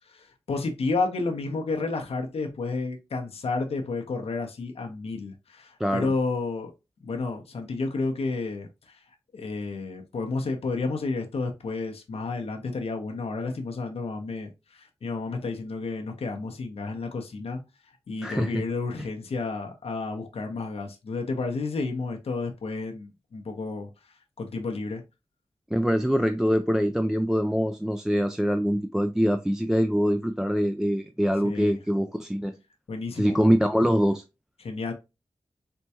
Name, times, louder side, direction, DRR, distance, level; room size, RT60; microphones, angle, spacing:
voice 1, 0.1-6.7 7.0-9.0 9.3-17.6 18.1-23.9 24.4-25.0 31.4-31.8 32.9-33.4 34.6-34.9, left 3 dB, 70° left, 0.7 m, -31 dB
voice 2, 5.8-6.1 18.2-18.6 25.7-32.6 33.2-34.2, equal, 5° right, 0.3 m, -24 dB
4.4 x 2.2 x 2.7 m
cardioid pair, 55°, 10 cm